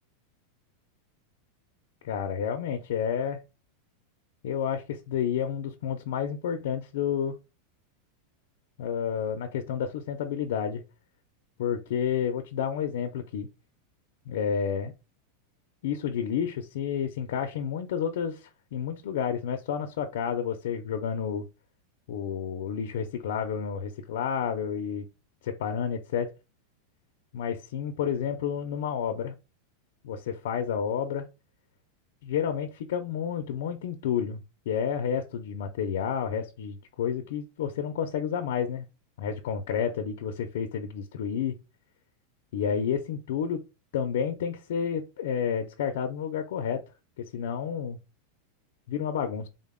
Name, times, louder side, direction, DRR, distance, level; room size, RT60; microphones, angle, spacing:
voice 1, 2.0-3.4 4.4-7.3 8.8-10.8 11.6-13.5 14.3-14.9 15.8-21.5 22.1-25.1 25.4-26.3 27.3-29.4 30.0-31.3 32.2-34.4 34.7-38.9 39.2-41.6 42.5-43.6 43.9-46.8 47.2-48.0 48.9-49.5, left 7 dB, 70° left, 0.4 m, -30 dB
3.6 x 2.0 x 3.6 m
supercardioid pair, 170°, 0 cm